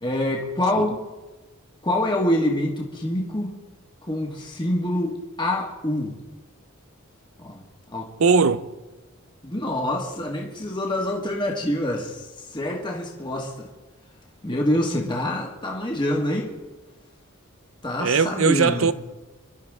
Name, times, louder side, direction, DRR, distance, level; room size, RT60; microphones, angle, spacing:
voice 1, 0.0-1.0 1.8-3.5 4.1-6.2 7.4-7.6 7.9-8.1 9.4-13.7 14.4-16.5 17.8-18.9, left 1 dB, 20° left, 1.8 m, -26 dB
voice 2, 8.2-8.7 18.0-18.9, right 5 dB, 75° right, 0.7 m, -19 dB
26.0 x 12.0 x 3.7 m
head